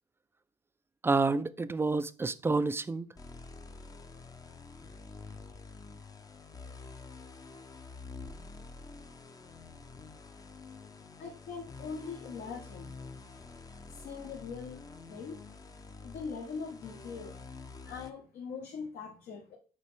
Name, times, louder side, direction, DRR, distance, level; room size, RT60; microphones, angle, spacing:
voice 1, 1.0-3.1, right 3 dB, 15° right, 0.4 m, -29 dB
sound 1, 3.2-18.1, left 4 dB, 20° left, 0.7 m, -48 dB
voice 2, 11.2-12.9 13.9-15.4 16.0-17.4 17.8-19.6, left 5 dB, 70° left, 1.4 m, -42 dB
6.5 x 4.2 x 3.5 m
cardioid pair, 110°, 17 cm